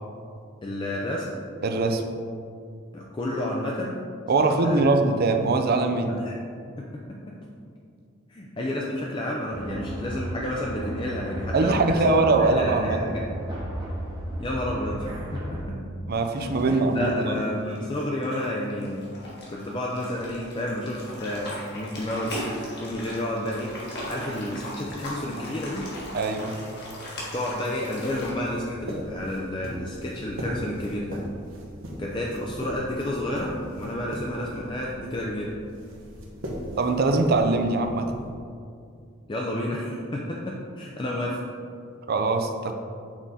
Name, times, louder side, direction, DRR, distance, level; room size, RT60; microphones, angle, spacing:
voice 1, 0.6-1.3 2.9-4.0 4.4-4.9 6.2-6.4 6.8-7.0 8.3-13.2 14.4-15.2 16.7-19.0 19.5-25.9 27.3-31.2 32.0-35.5 39.3-41.4, left 1 dB, 25° left, -3 dB, 0.4 m, -30 dB
voice 2, 1.6-2.0 4.3-6.1 11.5-13.0 16.1-17.4 26.1-26.5 36.8-38.1 42.1-42.7, right 3 dB, 50° right, 5 dB, 0.5 m, -22 dB
sound 1, 9.5-15.6, right 1 dB, 20° right, 0.9 m, -34 dB
sound 2, 16.3-28.3, left 1 dB, 55° left, 1.5 m, -38 dB
sound 3, 27.9-38.3, equal, 75° right, 0.9 m, -38 dB
6.1 x 3.8 x 4.1 m, 2.3 s
head